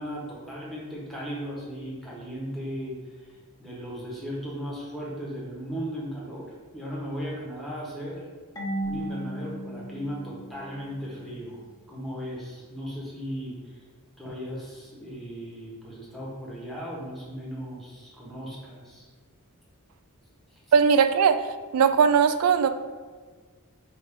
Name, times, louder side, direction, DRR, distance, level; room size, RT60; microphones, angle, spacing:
voice 1, 0.0-3.0 3.6-8.2 8.8-13.6 14.2-19.0, equal, ahead, -5 dB, 1.0 m, -36 dB
Marimba xylophone / Wood, 8.6-11.3, right 1 dB, 15° left, 0.6 m, -35 dB
voice 2, 20.7-21.4 21.7-22.7, right 6 dB, 75° right, 9 dB, 0.3 m, -19 dB
5.2 x 2.5 x 3.5 m, 1.5 s
head